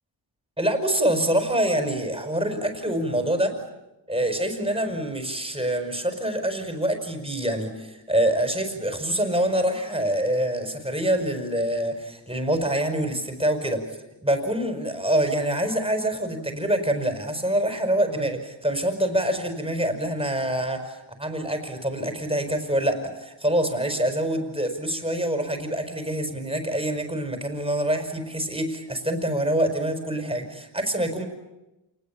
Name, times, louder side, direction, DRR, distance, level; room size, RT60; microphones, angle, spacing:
voice 1, 0.6-3.6 4.1-13.9 14.2-31.3, right 1 dB, 10° right, 6 dB, 5.5 m, -25 dB
28.0 x 20.0 x 8.7 m, 0.96 s
cardioid pair, 80°, 46 cm